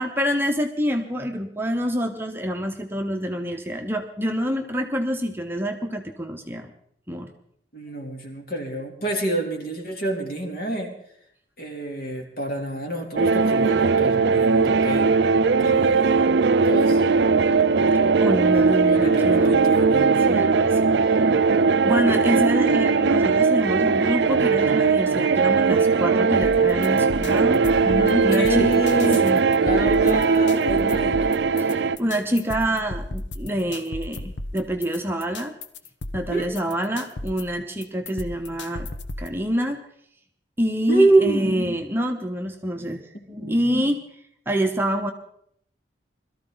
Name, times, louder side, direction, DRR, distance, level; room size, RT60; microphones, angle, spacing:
voice 1, 0.0-6.7 7.1-7.3 18.2-19.6 20.3-20.8 21.1-21.3 21.8-27.6 28.1-28.8 29.2-29.4 31.6-35.5 36.1-38.9 39.2-39.8 40.6-43.0 43.3-44.0 44.5-45.1, equal, 10° right, 3 dB, 0.9 m, -26 dB
voice 2, 7.7-10.9 11.6-15.2 15.5-16.3 16.7-17.0 18.9-20.1 27.8-29.2 29.6-31.3 36.3-36.4 40.9-41.5 43.4-43.5, right 2 dB, 50° left, 1 dB, 3.1 m, -26 dB
sound 1, 13.2-32.0, right 4 dB, 70° right, 0.5 m, -19 dB
sound 2, 26.4-39.4, left 2 dB, 80° left, 1.1 m, -35 dB
22.0 x 13.5 x 4.0 m, 0.70 s
head